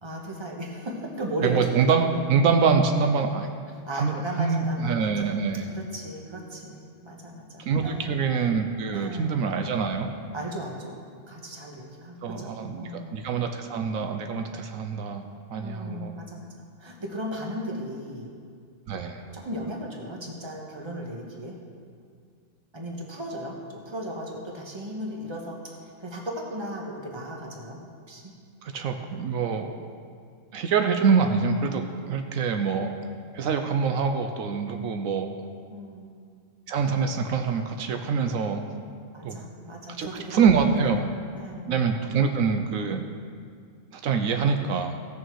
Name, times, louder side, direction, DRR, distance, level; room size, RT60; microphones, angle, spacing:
voice 1, 0.0-2.2 2.6-2.8 3.9-5.4 5.7-8.2 8.9-9.5 10.3-13.3 15.6-16.5 16.8-18.3 19.3-21.6 22.7-27.8 28.1-28.3 35.7-36.1 39.1-40.5 41.3-41.7, right 1 dB, 20° right, -1 dB, 1.3 m, -36 dB
voice 2, 1.4-3.5 3.9-5.7 7.7-10.1 12.2-15.2 15.5-16.2 18.9-19.2 28.6-29.7 30.5-32.9 33.3-35.4 36.7-38.7 39.2-39.5 40.0-41.1 41.7-43.0 43.9-45.0, right 5 dB, 80° right, 5 dB, 1.1 m, -25 dB
16.5 x 6.5 x 4.6 m, 2.2 s
omnidirectional pair, 1.4 m